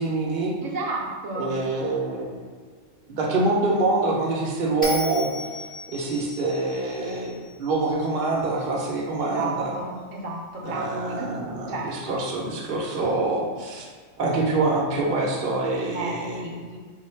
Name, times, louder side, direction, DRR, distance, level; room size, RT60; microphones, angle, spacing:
voice 1, 0.0-0.6 1.4-2.4 3.1-5.3 5.9-9.7 10.6-13.9 14.2-16.5, right 2 dB, 50° right, -2 dB, 0.9 m, -25 dB
voice 2, 0.6-1.6 9.2-11.4 11.7-12.2 15.9-16.8, right 3 dB, 75° right, -2 dB, 1.0 m, -33 dB
Bell, 4.8-8.1, left 1 dB, 10° left, 0.8 m, -36 dB
4.1 x 2.3 x 4.3 m, 1.5 s
omnidirectional pair, 1.3 m